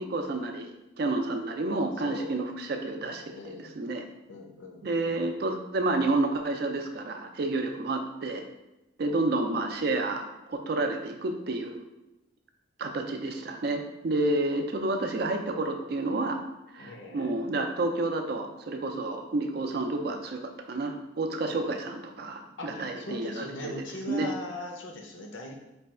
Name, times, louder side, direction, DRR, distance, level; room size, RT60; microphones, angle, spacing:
voice 1, 0.0-4.0 4.8-8.5 9.0-11.8 12.8-16.4 16.7-23.7 24.1-24.3, right 2 dB, 50° right, 5 dB, 0.4 m, -30 dB
voice 2, 2.0-2.4 3.0-3.8 4.3-5.3 9.1-9.4 16.8-17.4 22.6-25.6, left 2 dB, 75° left, 2 dB, 0.6 m, -40 dB
3.3 x 2.3 x 4.2 m, 0.96 s
head